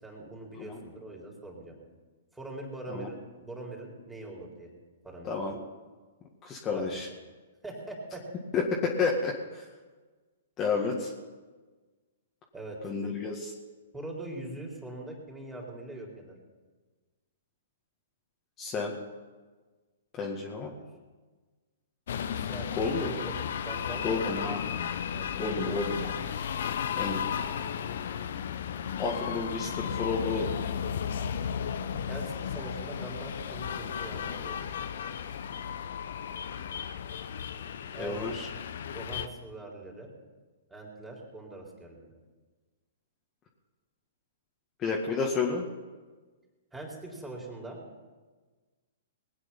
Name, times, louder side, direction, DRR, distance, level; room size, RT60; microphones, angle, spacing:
voice 1, 0.0-1.7 2.3-4.7 5.0-5.3 6.7-7.0 7.6-8.2 12.5-12.9 13.9-16.4 20.5-20.8 22.3-24.6 25.1-26.1 32.1-34.6 37.9-38.3 38.9-40.1 40.7-42.1 46.7-47.8, right 2 dB, 5° right, -2 dB, 4.2 m, -42 dB
voice 2, 5.3-5.6 6.4-7.1 8.5-9.6 10.6-11.1 12.8-13.5 18.6-18.9 20.2-20.7 22.7-23.1 24.0-24.6 25.4-26.0 27.0-27.2 29.0-30.7 38.0-38.5 44.8-45.6, left 4 dB, 25° left, -2 dB, 2.0 m, -31 dB
sound 1, 22.1-39.3, left 8 dB, 60° left, 0.8 m, -34 dB
21.0 x 9.2 x 5.7 m, 1.3 s
figure-of-eight pair, 120°, 0 cm